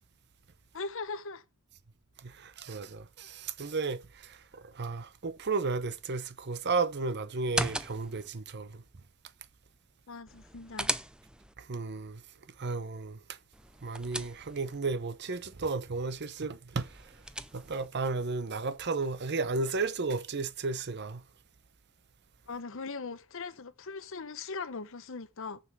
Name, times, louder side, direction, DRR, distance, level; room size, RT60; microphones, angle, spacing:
voice 1, 0.7-1.4 10.1-11.0 22.5-25.6, left 4 dB, 65° left, 0.8 m, -40 dB
voice 2, 2.4-4.0 4.3-8.8 11.7-12.2 12.6-13.2 13.8-16.9 17.5-21.2, right 4 dB, 50° right, 0.8 m, -33 dB
sound 1, 7.4-8.3 10.3-11.5 13.5-14.8 16.8-17.9, right 1 dB, 5° right, 0.4 m, -37 dB
6.9 x 6.6 x 6.1 m
head